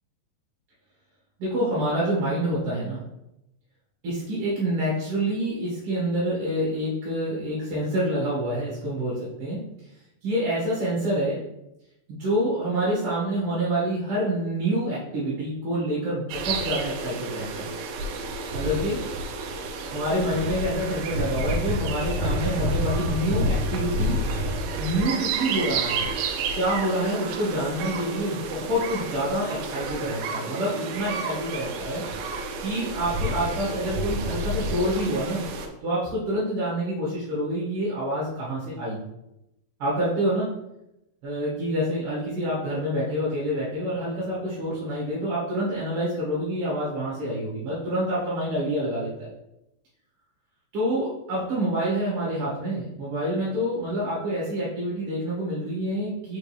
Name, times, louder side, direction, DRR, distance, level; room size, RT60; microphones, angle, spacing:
voice 1, 1.4-3.0 4.0-9.6 10.2-11.4 12.1-17.7 18.5-19.0 19.9-24.2 24.8-26.0 26.5-32.0 32.6-35.4 35.8-39.0 39.8-40.5 41.2-49.3 50.7-56.4, right 1 dB, 45° right, -7 dB, 2.0 m, -27 dB
sound 1, 16.3-35.7, right 2 dB, 85° right, 1.9 m, -29 dB
6.2 x 5.1 x 3.2 m, 0.86 s
omnidirectional pair, 4.8 m